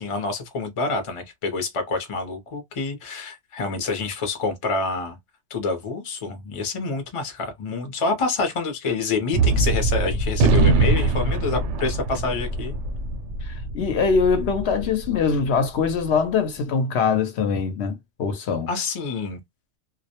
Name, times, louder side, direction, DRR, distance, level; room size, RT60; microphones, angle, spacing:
voice 1, 0.0-5.2 5.5-12.8 18.7-19.4, left 3 dB, 35° left, 0.6 m, -27 dB
Gunshot gunfire, 9.3-15.9, right 3 dB, 80° right, 0.9 m, -23 dB
voice 2, 13.4-18.7, left 5 dB, 70° left, 0.8 m, -23 dB
2.2 x 2.1 x 2.8 m
omnidirectional pair, 1.2 m